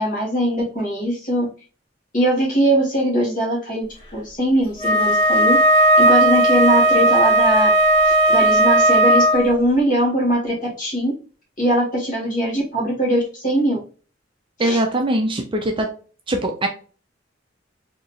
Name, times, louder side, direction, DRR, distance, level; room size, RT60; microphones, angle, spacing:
voice 1, 0.0-1.5 2.1-7.7 8.0-11.1 11.6-13.8 14.6-14.8, right 1 dB, 45° left, -4 dB, 1.9 m, -21 dB
Wind instrument woodwind instrument, 4.8-9.5, right 1 dB, 25° left, 1.7 m, -15 dB
voice 2, 14.6-15.9 16.3-16.7, right 1 dB, 25° right, 3 dB, 0.6 m, -21 dB
4.0 x 2.9 x 2.4 m, 0.39 s
head